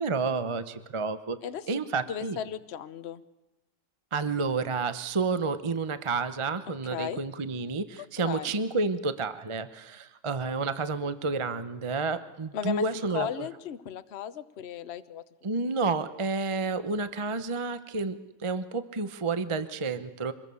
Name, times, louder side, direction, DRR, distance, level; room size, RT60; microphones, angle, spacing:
voice 1, 0.0-1.4 1.7-2.4 4.1-13.5 15.4-20.3, right 4 dB, 25° right, 11 dB, 0.7 m, -30 dB
voice 2, 1.4-1.8 2.1-3.2 6.9-7.2 8.2-8.5 12.5-12.8 13.1-15.2, left 9 dB, 45° left, 12 dB, 1.0 m, -35 dB
25.5 x 21.0 x 7.0 m, 1.0 s
omnidirectional pair, 1.9 m